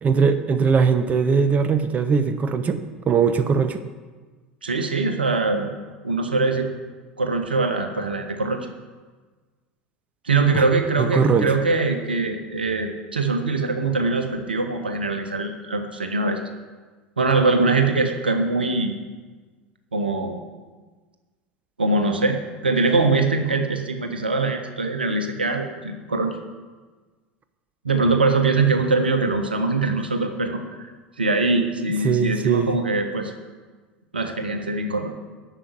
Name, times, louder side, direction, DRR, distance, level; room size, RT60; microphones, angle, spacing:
voice 1, 0.0-3.8 10.5-10.6 11.0-11.5 32.0-32.8, right 6 dB, 30° right, 9 dB, 0.9 m, -20 dB
voice 2, 4.6-5.7 6.0-6.7 7.2-8.7 10.2-16.4 17.2-18.9 19.9-20.4 21.8-22.4 22.6-26.3 27.8-30.9 31.2-33.3 34.1-35.1, right 3 dB, 85° right, 5 dB, 1.4 m, -22 dB
11.5 x 7.3 x 8.3 m, 1.4 s
figure-of-eight pair, 75°, 5 cm